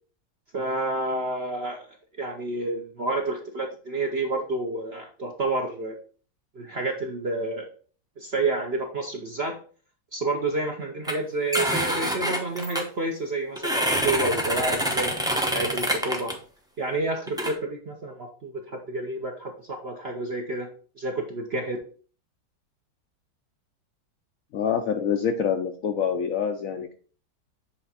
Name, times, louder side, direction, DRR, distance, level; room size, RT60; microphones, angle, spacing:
voice 1, 0.5-6.0 6.5-7.7 8.2-9.6 10.1-16.3 16.8-20.7 21.0-21.8, right 2 dB, 55° right, 2 dB, 0.7 m, -29 dB
sound 1, 11.0-11.1 11.5-12.8 13.6-16.3 17.3-17.5, equal, 5° right, 0.3 m, -26 dB
voice 2, 24.5-26.9, left 7 dB, 70° left, 6 dB, 0.8 m, -26 dB
7.3 x 3.4 x 4.1 m, 0.42 s
omnidirectional pair, 1.9 m